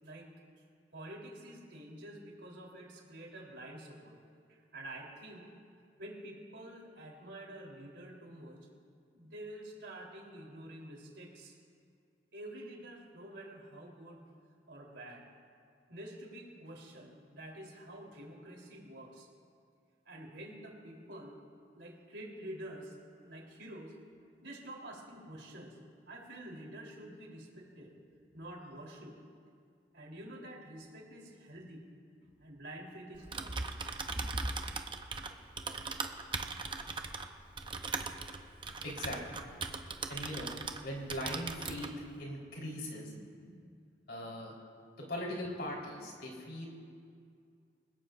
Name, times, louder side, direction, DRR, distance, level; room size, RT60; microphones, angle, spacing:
voice 1, 0.0-0.3 0.9-4.2 4.7-5.5 6.0-8.6 9.1-11.5 12.3-14.2 14.7-15.2 15.9-19.3 20.1-21.4 21.7-23.0 23.2-23.9 24.4-25.8 26.1-27.9 28.3-29.2 29.9-31.8 32.2-33.5, right 1 dB, 85° right, -2 dB, 3.6 m, -48 dB
Typing, 33.1-40.8 41.1-41.9, right 4 dB, 30° right, 0.7 m, -39 dB
voice 2, 38.8-39.4 40.1-40.5 40.8-41.9 42.2-43.5 44.1-44.5 45.0-46.7, left 1 dB, 65° left, -3 dB, 4.1 m, -40 dB
28.5 x 16.5 x 2.6 m, 2.3 s
head